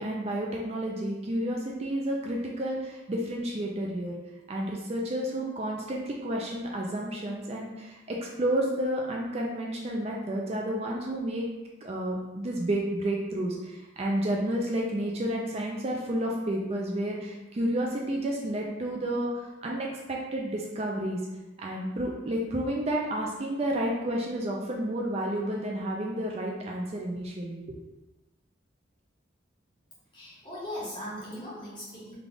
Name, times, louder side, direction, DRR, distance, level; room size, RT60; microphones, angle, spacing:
voice 1, 0.0-4.1 4.5-11.5 11.8-21.2 21.6-27.8, right 1 dB, 35° right, -1 dB, 0.4 m, -31 dB
voice 2, 30.1-32.2, equal, 25° left, -8 dB, 1.2 m, -39 dB
3.4 x 2.3 x 3.8 m, 1.1 s
head